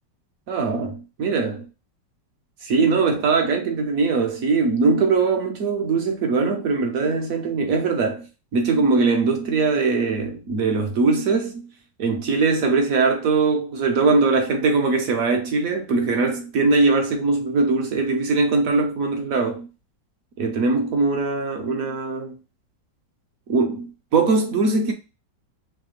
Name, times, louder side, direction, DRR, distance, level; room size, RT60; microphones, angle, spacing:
voice 1, 0.5-1.6 2.6-8.2 8.5-11.7 12.0-19.7 20.4-22.4 23.5-24.9, right 4 dB, 65° right, 1.0 m, -21 dB
3.3 x 2.7 x 3.0 m
omnidirectional pair, 1.9 m